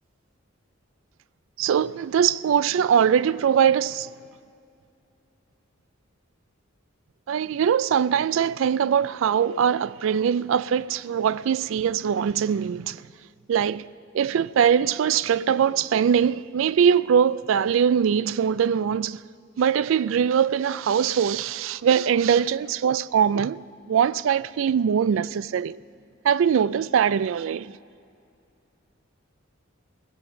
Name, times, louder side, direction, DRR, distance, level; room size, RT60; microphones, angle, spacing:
voice 1, 1.6-4.1 7.3-13.0 13.5-13.8 14.1-19.2 19.6-23.6 23.9-25.8 26.2-27.7, right 8 dB, 70° right, 0.3 m, -22 dB
18.0 x 8.0 x 7.2 m
head